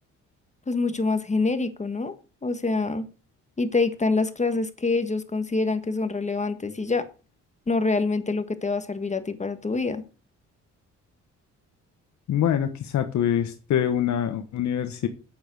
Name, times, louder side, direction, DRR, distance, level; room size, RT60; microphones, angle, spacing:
voice 1, 0.7-2.1 2.4-3.0 3.6-7.0 7.7-10.0, left 3 dB, 25° left, 10 dB, 1.6 m, -26 dB
voice 2, 12.3-15.1, left 9 dB, 70° left, 8 dB, 1.2 m, -25 dB
8.7 x 8.4 x 6.3 m, 0.35 s
cardioid pair, 90°, 30 cm